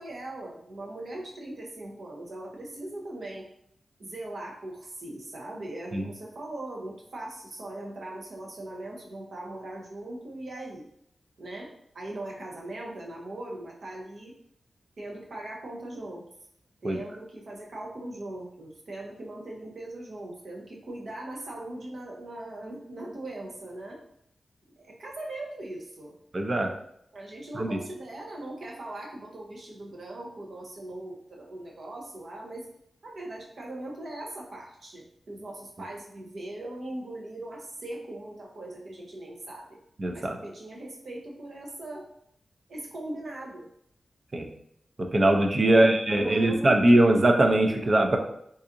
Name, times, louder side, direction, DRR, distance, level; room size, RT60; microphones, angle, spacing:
voice 1, 0.0-3.5 4.0-10.8 11.4-14.3 15.0-16.2 16.8-24.0 24.8-26.2 27.1-32.7 33.0-39.7 40.1-42.0 42.7-43.7 45.6-47.0, right 1 dB, 70° right, -1 dB, 0.8 m, -40 dB
voice 2, 26.3-26.7 27.5-27.8 40.0-40.4 44.3-44.5 45.0-48.2, right 1 dB, 45° right, 3 dB, 0.5 m, -21 dB
3.9 x 2.5 x 2.6 m, 0.71 s
cardioid pair, 50°, 0 cm